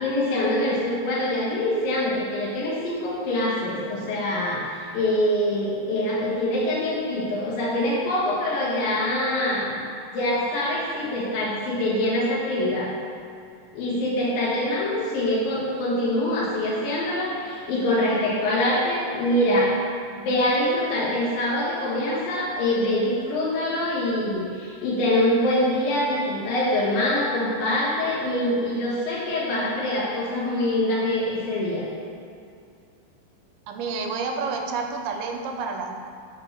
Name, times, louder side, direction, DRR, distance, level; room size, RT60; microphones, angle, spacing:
voice 1, 0.0-12.9 13.7-19.7 20.1-31.9, left 1 dB, 70° left, -7 dB, 2.9 m, -24 dB
voice 2, 33.7-36.0, right 4 dB, 85° right, 3 dB, 2.5 m, -29 dB
6.6 x 4.3 x 6.0 m, 2.4 s
omnidirectional pair, 4.5 m